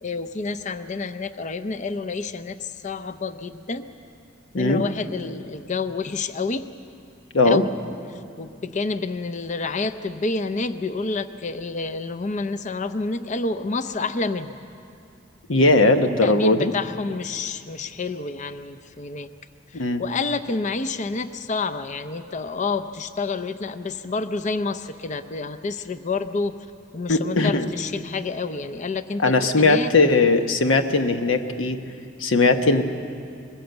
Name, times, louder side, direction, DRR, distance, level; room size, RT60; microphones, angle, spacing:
voice 1, 0.0-3.9 4.5-6.7 7.4-7.7 8.4-14.6 16.2-19.3 19.7-26.6 26.9-29.9, left 3 dB, 40° left, 11 dB, 0.5 m, -28 dB
voice 2, 15.5-16.7 19.7-20.0 27.1-27.7 29.2-31.8 32.2-32.8, left 3 dB, 85° left, 7 dB, 1.1 m, -19 dB
21.5 x 16.0 x 8.0 m, 2.5 s
head